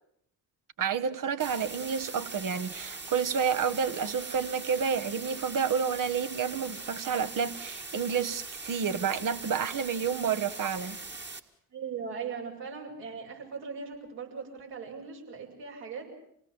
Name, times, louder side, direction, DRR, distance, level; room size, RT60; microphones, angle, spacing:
voice 1, 0.8-11.0, right 7 dB, 45° right, 1.4 m, -30 dB
sound 1, 1.4-11.4, right 3 dB, 25° right, 2.0 m, -41 dB
voice 2, 11.7-16.1, right 6 dB, 70° right, 6.8 m, -39 dB
27.0 x 18.5 x 7.3 m
hypercardioid pair, 50°, 45 cm